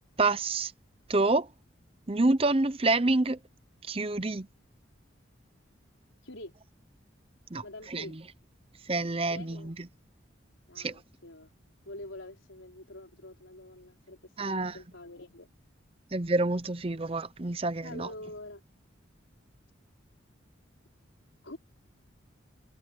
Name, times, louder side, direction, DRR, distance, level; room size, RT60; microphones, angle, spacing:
voice 1, 0.2-0.7 1.1-1.5 2.1-3.4 3.9-4.5 7.5-7.6 7.9-8.0 8.9-9.7 10.8-10.9 14.4-14.7 16.1-18.1, right 2 dB, 30° right, 0.7 m, -27 dB
voice 2, 6.2-6.5 7.6-8.2 9.3-9.7 10.7-11.6 11.8-15.5 17.8-18.6 21.4-21.6, left 1 dB, 85° left, 4.3 m, -46 dB
head